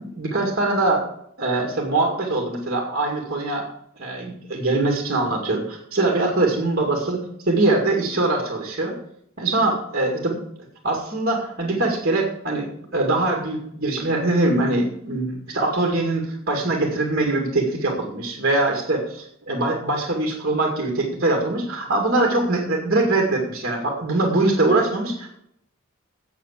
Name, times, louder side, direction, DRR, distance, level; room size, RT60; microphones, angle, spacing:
voice 1, 0.2-1.1 1.4-3.7 4.0-8.9 9.4-10.4 10.8-12.7 12.9-25.3, right 2 dB, 45° right, 0 dB, 2.2 m, -22 dB
8.5 x 7.8 x 8.2 m, 0.72 s
head